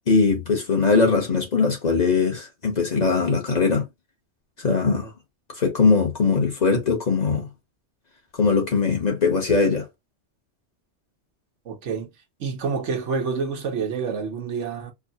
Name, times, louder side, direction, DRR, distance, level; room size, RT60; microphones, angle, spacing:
voice 1, 0.1-3.9 4.6-5.1 5.6-7.5 8.4-9.9, left 4 dB, 40° left, 1.0 m, -21 dB
voice 2, 11.7-12.1 12.4-14.9, right 5 dB, 80° right, 1.2 m, -28 dB
4.7 x 2.1 x 2.7 m
omnidirectional pair, 1.2 m